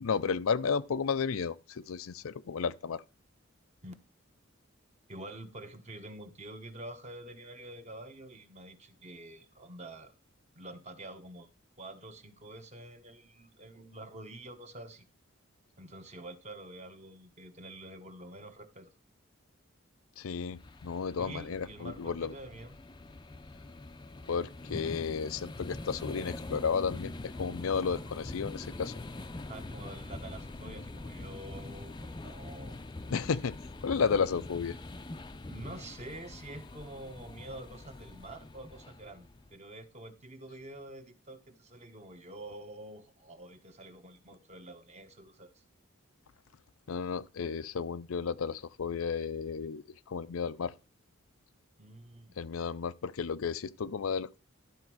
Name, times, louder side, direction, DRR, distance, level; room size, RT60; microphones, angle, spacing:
voice 1, 0.0-3.0 20.2-22.3 24.3-28.9 33.1-33.6 33.8-34.8 46.9-50.7 52.4-54.4, left 6 dB, 90° left, 0.5 m, -33 dB
voice 2, 5.1-10.1 10.6-11.5 11.8-15.1 15.8-18.9 21.1-22.8 29.5-32.8 35.5-45.6 51.8-52.3, right 1 dB, 35° right, 1.2 m, -47 dB
sound 1, 20.5-39.6, left 2 dB, 20° left, 0.5 m, -44 dB
12.0 x 4.3 x 6.1 m
head